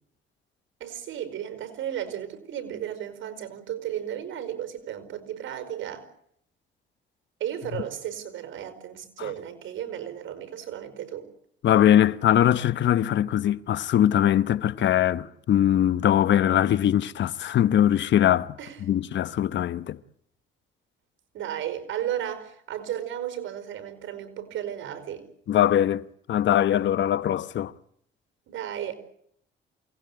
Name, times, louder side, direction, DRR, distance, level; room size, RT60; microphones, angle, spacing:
voice 1, 0.8-6.1 7.4-11.3 18.6-18.8 21.3-25.3 28.5-28.9, right 10 dB, 80° right, 5.0 m, -34 dB
voice 2, 11.6-20.0 25.5-27.7, left 11 dB, 65° left, 1.0 m, -22 dB
28.5 x 19.0 x 8.7 m
cardioid pair, 90°, 20 cm